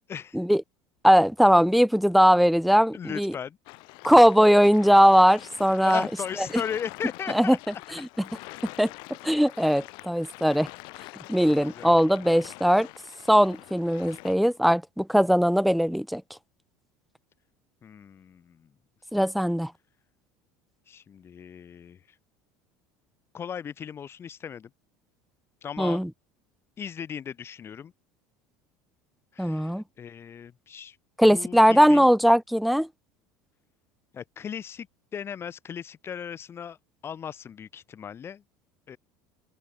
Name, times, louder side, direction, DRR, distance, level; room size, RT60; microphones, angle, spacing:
voice 1, 0.1-0.4 2.9-3.6 5.8-7.6 8.4-8.7 11.4-11.9 17.8-18.7 20.9-22.0 23.3-24.7 25.6-26.0 26.8-27.9 29.3-31.0 31.3-32.1 34.1-34.9 35.1-36.8 37.0-38.4 38.9-39.0, left 8 dB, 30° left, 6.5 m, -37 dB
voice 2, 1.0-3.3 4.0-6.0 7.3-7.6 8.8-8.9 9.2-10.7 11.3-12.9 13.3-16.2 19.1-19.7 25.8-26.1 29.4-29.8 31.2-32.9, equal, ahead, 0.6 m, -20 dB
sound 1, 3.7-14.3, left 27 dB, 65° left, 6.9 m, -45 dB
open air
cardioid pair, 140°, 9 cm